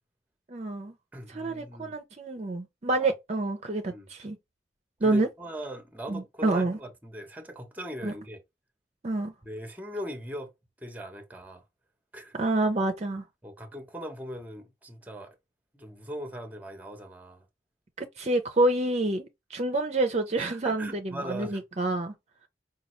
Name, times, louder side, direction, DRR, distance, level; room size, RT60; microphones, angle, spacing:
voice 1, 0.5-0.9 1.3-4.4 5.0-5.3 6.1-6.8 8.0-8.1 9.0-9.3 12.4-13.2 18.2-20.9 21.2-22.1, right 2 dB, 35° right, 0.5 m, -27 dB
voice 2, 1.1-2.0 2.9-3.1 3.9-4.1 5.0-8.4 9.4-10.5 10.8-11.6 12.1-12.4 13.4-15.4 15.7-17.5 20.4-21.6, equal, 10° right, 0.8 m, -40 dB
5.2 x 2.3 x 3.0 m
head